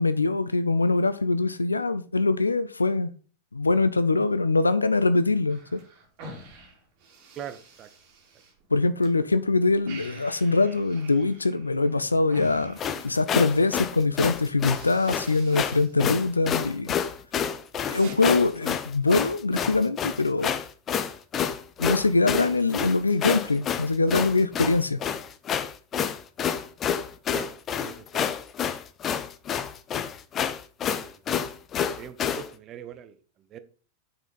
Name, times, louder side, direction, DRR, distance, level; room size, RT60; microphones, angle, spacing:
voice 1, 0.0-3.1 3.5-5.8 8.7-16.9 17.9-20.6 21.8-25.0, left 3 dB, 80° left, 13 dB, 0.5 m, -23 dB
sound 1, 5.5-9.1 9.4-13.5 14.1-14.2 14.5-16.0 16.3-16.8 17.2-18.2, right 1 dB, 45° right, 3.1 m, -46 dB
voice 2, 7.4-7.9 27.3-28.3 30.9-31.2 32.0-33.6, right 9 dB, 30° right, 10 dB, 1.0 m, -42 dB
sound 2, 12.8-32.5, left 8 dB, 25° left, 0.7 m, -29 dB
8.1 x 5.8 x 5.3 m, 0.40 s
figure-of-eight pair, 90°, 0 cm